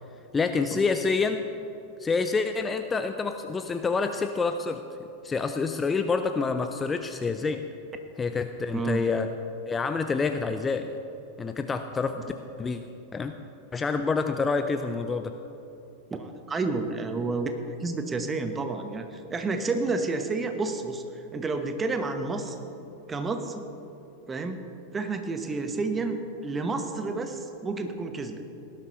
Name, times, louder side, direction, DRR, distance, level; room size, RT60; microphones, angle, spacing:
voice 1, 0.3-1.4 2.0-4.8 5.2-7.6 8.2-9.3 9.7-10.9 11.4-12.3 12.6-12.8 13.1-13.3 13.7-15.3, left 4 dB, 20° left, 8 dB, 0.5 m, -27 dB
voice 2, 16.1-22.6 23.1-23.6 24.3-24.6 24.9-28.4, right 3 dB, 20° right, 6 dB, 1.2 m, -30 dB
18.0 x 11.5 x 3.2 m, 2.9 s
figure-of-eight pair, 90°, 0 cm